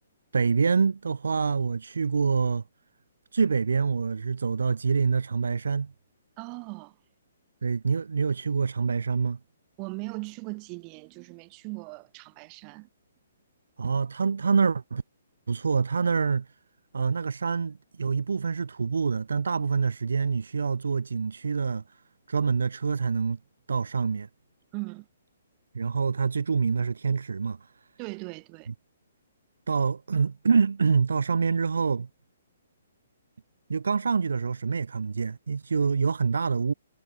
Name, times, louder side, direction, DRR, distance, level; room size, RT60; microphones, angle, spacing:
voice 1, 0.3-2.6 3.3-5.9 7.6-9.4 13.8-15.0 15.5-16.5 16.9-21.8 22.3-23.4 23.7-24.3 25.7-27.6 29.7-32.1 33.7-36.7, right 5 dB, 80° right, 1.0 m, -26 dB
voice 2, 6.4-7.0 9.8-12.9 24.7-25.1 28.0-28.7, right 34 dB, 30° right, 4.8 m, -39 dB
hypercardioid pair, 135°, 0 cm